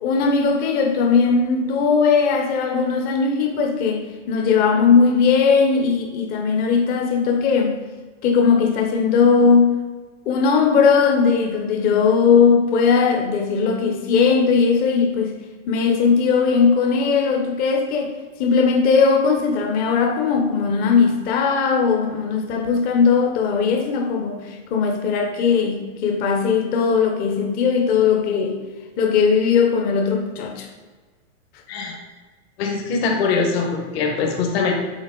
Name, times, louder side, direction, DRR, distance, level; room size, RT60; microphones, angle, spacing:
voice 1, 0.0-7.7 8.2-9.7 10.3-15.3 15.7-18.1 18.4-28.6 29.0-30.7, left 5 dB, 25° left, 4 dB, 0.7 m, -18 dB
voice 2, 32.6-34.7, left 4 dB, 55° left, 1 dB, 1.3 m, -22 dB
7.2 x 4.2 x 3.8 m, 1.3 s
supercardioid pair, 155°, 37 cm